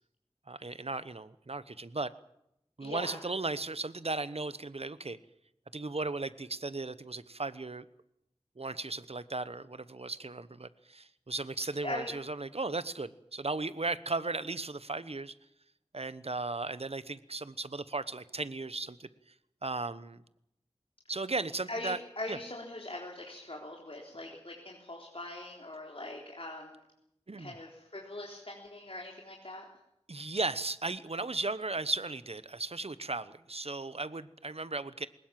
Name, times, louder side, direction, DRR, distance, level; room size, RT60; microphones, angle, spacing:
voice 1, 0.5-2.1 2.8-5.2 5.7-7.9 8.6-15.3 15.9-19.1 19.6-20.2 21.1-22.0 22.3-22.4 27.3-27.5 30.1-35.1, right 3 dB, 70° right, 15 dB, 1.0 m, -36 dB
voice 2, 2.8-3.2 11.8-12.1 21.7-26.9 27.4-29.6, left 2 dB, 60° left, -1 dB, 3.7 m, -41 dB
21.0 x 19.5 x 7.6 m, 0.80 s
wide cardioid pair, 45°, 11 cm